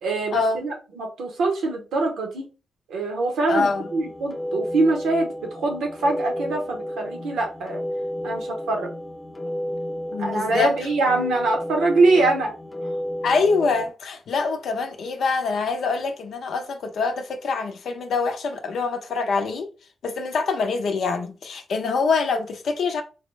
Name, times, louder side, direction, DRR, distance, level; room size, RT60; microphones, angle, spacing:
voice 1, 0.0-2.5 2.9-7.8 8.2-8.9 10.2-12.5, right 2 dB, 85° right, 1.0 m, -23 dB
voice 2, 3.5-3.9 10.1-10.7 13.2-19.7 20.0-23.0, left 4 dB, 75° left, 0.5 m, -25 dB
sound 1, 3.6-13.9, equal, 30° left, 0.7 m, -32 dB
3.9 x 2.0 x 3.2 m
supercardioid pair, 50°, 0 cm